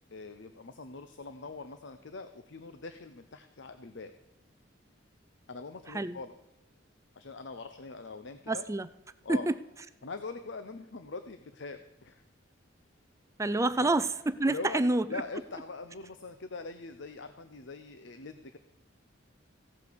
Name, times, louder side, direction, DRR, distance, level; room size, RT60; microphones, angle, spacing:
voice 1, 0.1-4.1 5.5-6.3 7.2-8.6 9.2-9.5 10.0-12.2 13.7-13.9 14.5-14.8 15.1-18.6, left 3 dB, 60° left, 9 dB, 0.8 m, -42 dB
voice 2, 5.9-6.2 8.5-8.9 9.3-9.5 13.4-15.1, right 2 dB, 15° right, 13 dB, 0.4 m, -28 dB
16.0 x 8.2 x 7.0 m, 1.0 s
head